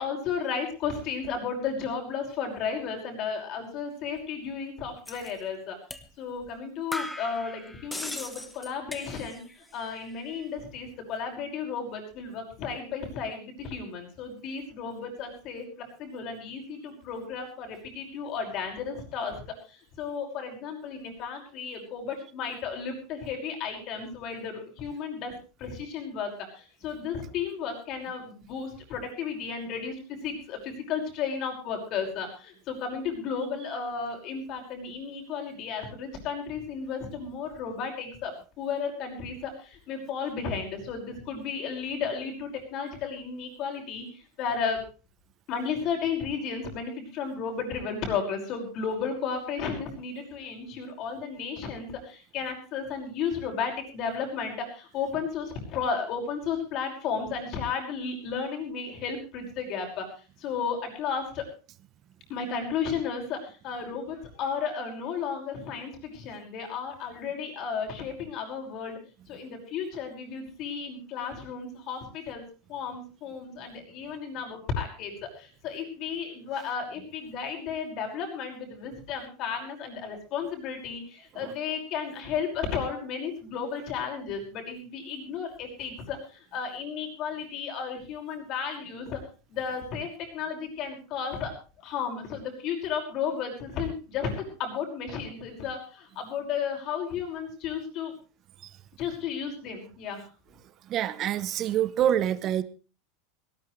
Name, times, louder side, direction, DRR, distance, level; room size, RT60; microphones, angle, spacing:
voice 1, 0.0-5.8 6.2-15.7 16.0-19.4 19.7-25.3 25.6-38.3 38.6-44.8 45.5-61.5 62.3-69.0 69.3-72.4 72.7-89.2 89.5-91.5 91.8-98.1 99.0-100.2, left 6 dB, 35° left, 2 dB, 5.6 m, -33 dB
sound 1, 5.1-5.3 5.9-6.1 6.4-6.5 6.9-9.5 9.8-10.4, left 1 dB, 5° left, 1.3 m, -39 dB
voice 2, 100.9-102.6, right 11 dB, 30° right, 16 dB, 0.8 m, -26 dB
18.5 x 18.5 x 3.3 m, 0.35 s
supercardioid pair, 165°, 0 cm